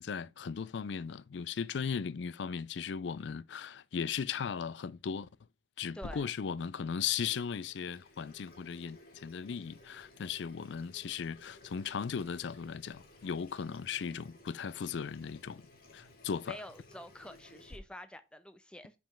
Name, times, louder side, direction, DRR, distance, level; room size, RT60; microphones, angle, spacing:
voice 1, 0.0-5.3 5.8-15.6 15.9-16.6, left 6 dB, 70° left, 0.4 m, -37 dB
voice 2, 5.9-6.3 16.5-18.9, left 1 dB, 5° left, 0.5 m, -48 dB
Water tap faucet / Sink (filling or washing), 6.0-17.8, left 1 dB, 50° left, 1.6 m, -56 dB
5.4 x 5.3 x 4.3 m
head